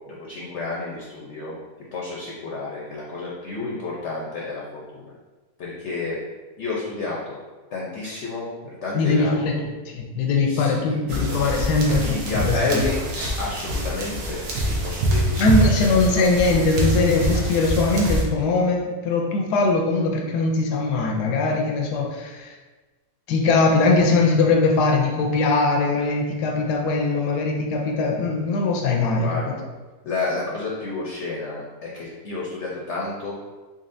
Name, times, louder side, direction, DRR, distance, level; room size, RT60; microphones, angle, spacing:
voice 1, 0.1-1.6 1.9-4.6 4.9-5.1 5.6-6.2 6.6-7.4 7.7-9.5 10.5-11.0 12.0-16.3 29.2-29.6 30.0-33.4, left 3 dB, 60° left, -4 dB, 0.8 m, -30 dB
voice 2, 8.9-12.8 15.4-22.5 23.3-29.5, left 3 dB, 85° left, 1 dB, 1.2 m, -21 dB
sound 1, 11.1-18.2, right 1 dB, 75° right, 1.3 m, -25 dB
4.1 x 3.5 x 2.6 m, 1.3 s
omnidirectional pair, 1.7 m